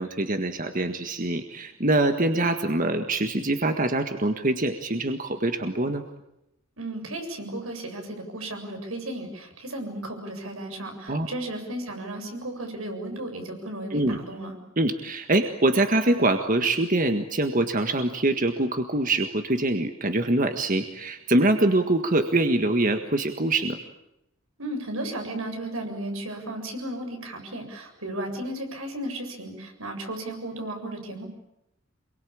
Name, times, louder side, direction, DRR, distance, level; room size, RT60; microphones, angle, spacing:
voice 1, 0.0-6.0 11.1-11.3 13.9-14.2 14.8-23.8, right 2 dB, 40° right, 7 dB, 1.7 m, -24 dB
voice 2, 6.8-14.6 24.6-31.3, right 1 dB, 90° right, 4 dB, 7.6 m, -34 dB
27.0 x 23.0 x 8.7 m, 0.85 s
head